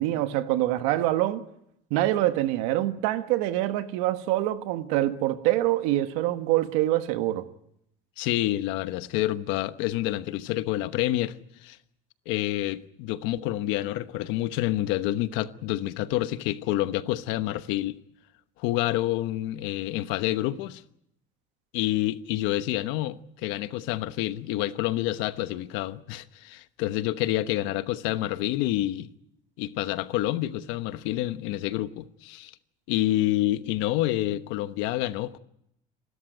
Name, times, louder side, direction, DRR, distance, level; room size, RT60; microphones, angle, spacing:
voice 1, 0.0-1.4 1.9-7.4, right 15 dB, 80° right, 1.5 m, -25 dB
voice 2, 8.2-11.8 12.3-17.9 18.6-20.8 21.7-29.1 29.6-32.5 32.9-35.4, left 15 dB, 65° left, 1.1 m, -28 dB
28.5 x 13.5 x 9.2 m
cardioid pair, 170°, 21 cm